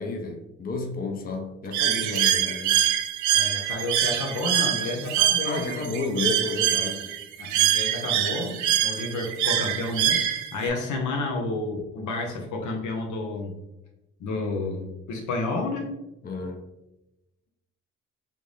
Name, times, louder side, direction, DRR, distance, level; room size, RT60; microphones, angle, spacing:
voice 1, 0.0-2.8 5.4-7.1 16.2-16.6, left 3 dB, 30° left, 3 dB, 0.6 m, -31 dB
Bird, 1.7-10.7, right 11 dB, 75° right, 0.5 m, -24 dB
voice 2, 3.3-5.6 7.4-13.6 14.2-15.9, left 2 dB, 75° left, 2 dB, 0.9 m, -30 dB
3.4 x 2.7 x 3.2 m, 0.93 s
cardioid pair, 90°, 30 cm